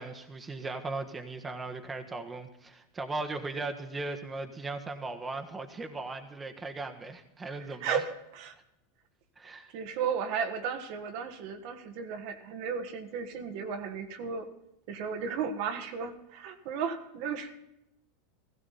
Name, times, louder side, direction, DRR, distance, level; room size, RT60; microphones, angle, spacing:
voice 1, 0.0-8.0 9.4-9.7, right 3 dB, 20° right, 5 dB, 1.4 m, -38 dB
voice 2, 7.4-8.5 9.7-14.5 14.9-17.5, right 6 dB, 55° right, 6 dB, 1.6 m, -34 dB
16.5 x 15.0 x 4.2 m, 0.84 s
hypercardioid pair, 90°, 0 cm